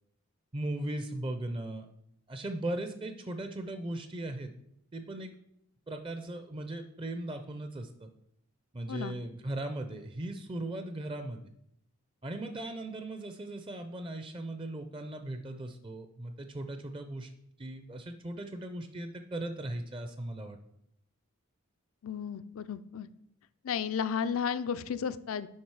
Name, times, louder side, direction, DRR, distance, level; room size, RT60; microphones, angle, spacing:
voice 1, 0.5-1.9 2.3-4.5 4.9-5.4 5.9-8.1 8.7-11.5 12.2-17.3 17.6-20.6, right 1 dB, 25° right, 8 dB, 0.5 m, -38 dB
voice 2, 22.0-23.1 23.6-25.5, left 7 dB, 70° left, 15 dB, 0.4 m, -33 dB
7.3 x 5.1 x 4.7 m, 0.74 s
head